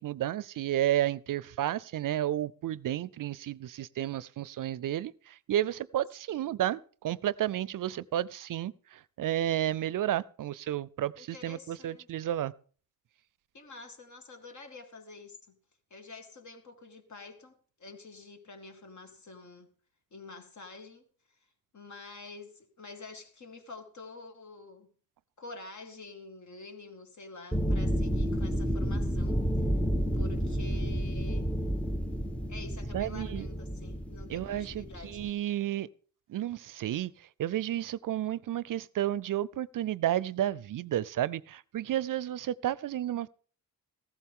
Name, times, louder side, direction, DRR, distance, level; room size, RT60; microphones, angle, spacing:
voice 1, 0.0-12.5 32.9-33.5 34.3-35.9 36.3-43.3, right 12 dB, 65° right, 0.5 m, -32 dB
voice 2, 11.2-12.1 13.5-15.6 15.9-19.7 20.1-21.4 21.7-24.9 25.4-29.7 30.1-31.5 32.5-35.5, left 3 dB, 55° left, 2.1 m, -48 dB
sound 1, 27.5-35.3, equal, 5° left, 0.7 m, -31 dB
15.0 x 13.5 x 3.7 m
cardioid pair, 90°, 35 cm